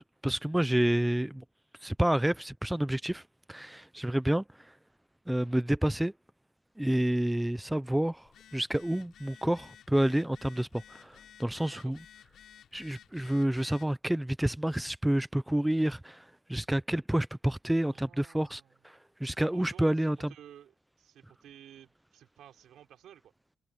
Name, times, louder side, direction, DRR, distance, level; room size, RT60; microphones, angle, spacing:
voice 1, 0.2-1.4 1.8-3.2 3.5-4.7 5.3-6.1 6.8-12.0 12.7-20.2, right 1 dB, 5° right, 0.4 m, -29 dB
Telephone, 8.2-13.9, left 9 dB, 65° left, 3.8 m, -55 dB
voice 2, 17.9-18.7 19.5-23.3, right 10 dB, 80° right, 4.1 m, -54 dB
wide cardioid pair, 180°, 0 cm